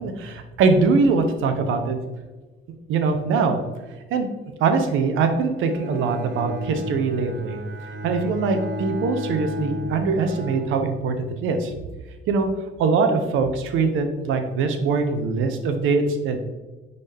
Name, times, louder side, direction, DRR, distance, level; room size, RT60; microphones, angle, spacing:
voice 1, 0.0-2.0 2.9-3.6 4.1-4.3 4.6-7.6 8.0-11.7 12.3-12.5 12.8-16.4, right 4 dB, 90° right, 7 dB, 0.9 m, -22 dB
Bowed string instrument, 5.5-11.3, equal, 65° right, 1.2 m, -33 dB
9.7 x 4.1 x 3.4 m, 1.2 s
cardioid pair, 90°, 20 cm